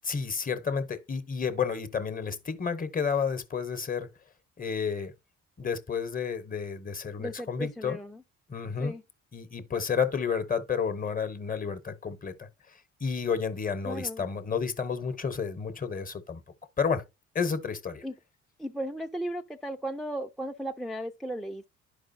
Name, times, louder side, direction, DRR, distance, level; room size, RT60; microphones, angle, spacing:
voice 1, 0.0-4.1 4.6-5.1 5.6-8.0 8.5-8.9 9.3-12.5 13.0-16.4 16.8-17.0 17.3-18.0, left 6 dB, 30° left, 0.9 m, -31 dB
voice 2, 7.2-8.2 8.8-9.0 13.9-14.2 18.0-18.1 18.6-21.7, right 1 dB, ahead, 0.4 m, -36 dB
11.0 x 4.8 x 2.6 m
cardioid pair, 90°, 30 cm